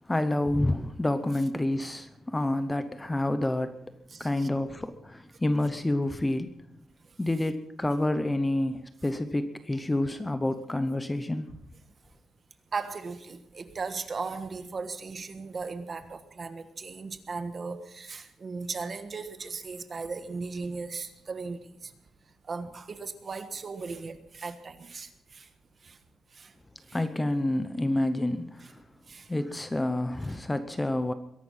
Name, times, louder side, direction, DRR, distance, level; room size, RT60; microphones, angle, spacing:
voice 1, 0.1-3.7 4.2-6.6 7.2-11.5 26.9-28.6 29.3-31.1, left 1 dB, 10° left, 0.8 m, -28 dB
voice 2, 4.1-4.5 12.7-21.9 22.5-25.5 25.8-26.0 26.3-26.5 26.9-27.0 28.6-28.7 29.1-29.3, right 4 dB, 30° right, 1.3 m, -37 dB
22.0 x 11.5 x 5.7 m
wide cardioid pair, 165°, 0 cm